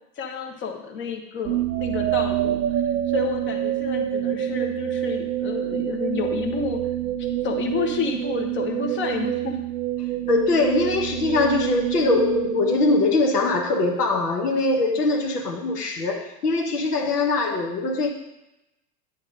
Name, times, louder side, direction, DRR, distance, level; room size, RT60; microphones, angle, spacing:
voice 1, 0.2-2.6 3.1-6.8 7.4-9.6, left 5 dB, 25° left, 2 dB, 1.2 m, -30 dB
sound 1, 1.4-13.5, right 12 dB, 75° right, 0.6 m, -27 dB
voice 2, 10.3-18.1, left 3 dB, 70° left, 2 dB, 1.4 m, -22 dB
9.9 x 3.5 x 6.5 m, 0.94 s
figure-of-eight pair, 90°, 49 cm